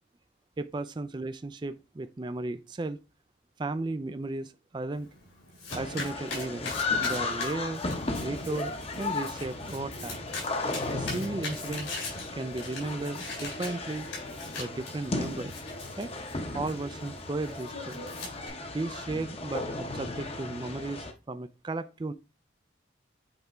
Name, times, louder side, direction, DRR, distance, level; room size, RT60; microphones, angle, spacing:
voice 1, 0.6-3.0 3.6-5.1 5.7-7.8 8.2-10.2 10.9-11.9 12.3-14.1 14.6-15.5 16.0-16.1 16.5-18.0 18.7-22.1, right 2 dB, 25° right, 0.3 m, -35 dB
Domestic sounds home sounds, 4.9-18.5, left 3 dB, 80° left, 3.9 m, -42 dB
sound 1, 5.7-21.1, left 3 dB, 30° left, 0.8 m, -35 dB
8.0 x 3.4 x 4.3 m
head